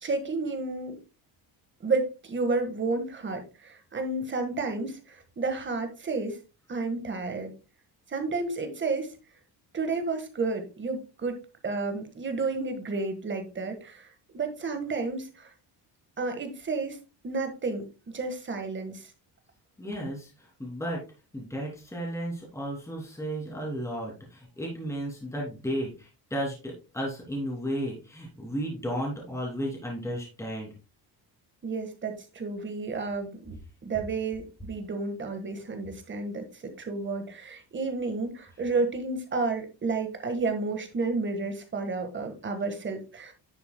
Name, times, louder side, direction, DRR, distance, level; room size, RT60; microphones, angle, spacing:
voice 1, 0.0-1.0 1.8-6.4 6.7-7.5 8.1-9.1 9.7-15.5 16.2-17.0 17.2-19.1 31.6-33.5 33.8-43.3, right 3 dB, 30° right, 6 dB, 1.6 m, -31 dB
voice 2, 19.8-21.0 21.3-30.7, equal, 5° left, -3 dB, 2.9 m, -34 dB
10.5 x 6.9 x 2.2 m, 0.30 s
cardioid pair, 150°, 40 cm